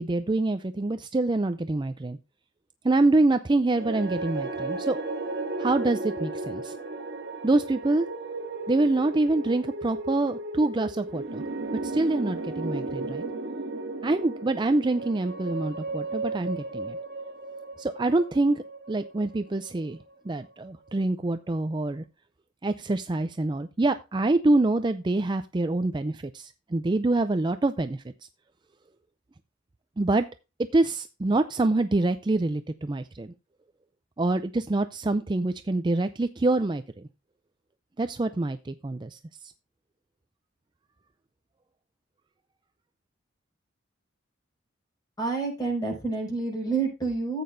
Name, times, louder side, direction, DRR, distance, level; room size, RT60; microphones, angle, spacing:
voice 1, 0.0-2.2 2.8-5.0 5.6-6.7 7.4-8.1 8.7-11.4 11.8-13.2 14.0-17.0 17.8-20.0 20.3-22.0 22.6-28.1 30.0-30.3 30.7-33.3 34.2-36.8 38.0-39.2, right 2 dB, 25° right, 10 dB, 0.4 m, -25 dB
sound 1, 3.7-20.0, right 2 dB, 55° right, 2.2 m, -35 dB
voice 2, 45.2-47.4, right 4 dB, 20° left, -1 dB, 6.0 m, -28 dB
14.0 x 8.5 x 2.6 m, 0.29 s
head